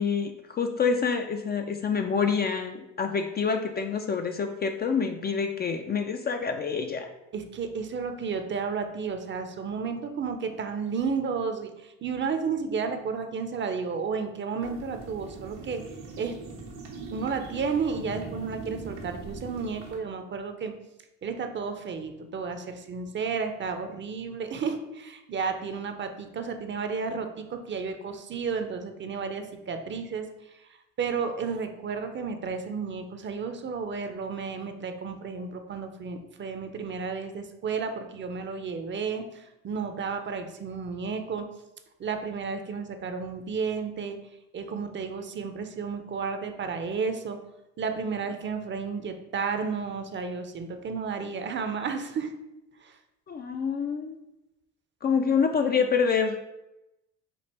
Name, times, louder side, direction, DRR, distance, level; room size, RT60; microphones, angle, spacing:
voice 1, 0.0-7.1 53.3-54.2 55.0-56.4, left 6 dB, 30° left, 5 dB, 0.4 m, -27 dB
voice 2, 7.3-15.8 16.2-16.3 17.1-20.7 21.2-30.3 30.5-30.7 31.0-41.4 42.0-44.2 44.5-47.4 47.8-52.3 52.8-53.0, right 5 dB, 35° right, 7 dB, 0.6 m, -32 dB
sound 1, 14.6-20.0, right 3 dB, 90° right, 1.2 m, -41 dB
5.3 x 2.4 x 4.1 m, 0.92 s
supercardioid pair, 90°, 34 cm